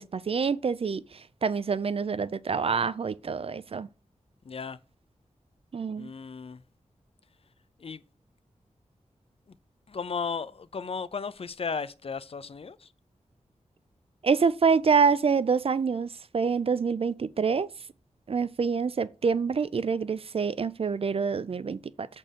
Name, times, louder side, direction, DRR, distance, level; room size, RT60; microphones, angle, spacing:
voice 1, 0.0-3.9 5.7-6.1 14.2-17.7 18.3-22.1, right 5 dB, 50° right, 0.4 m, -26 dB
voice 2, 4.4-4.8 6.0-6.6 7.8-8.0 9.9-12.9, left 5 dB, 50° left, 0.5 m, -35 dB
7.3 x 4.3 x 5.1 m
wide cardioid pair, 100°, 13 cm